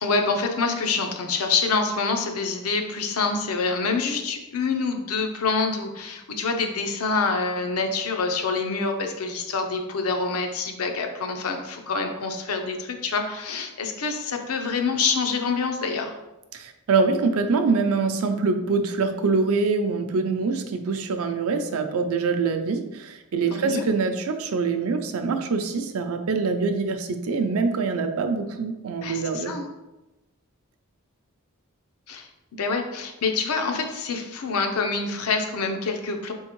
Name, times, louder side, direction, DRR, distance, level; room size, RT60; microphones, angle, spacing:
voice 1, 0.0-16.1 23.5-23.8 29.0-29.7 32.1-36.3, left 4 dB, 90° left, 4 dB, 0.6 m, -26 dB
voice 2, 16.5-29.5, right 4 dB, 75° right, 7 dB, 0.5 m, -24 dB
4.2 x 3.6 x 3.0 m, 1.0 s
head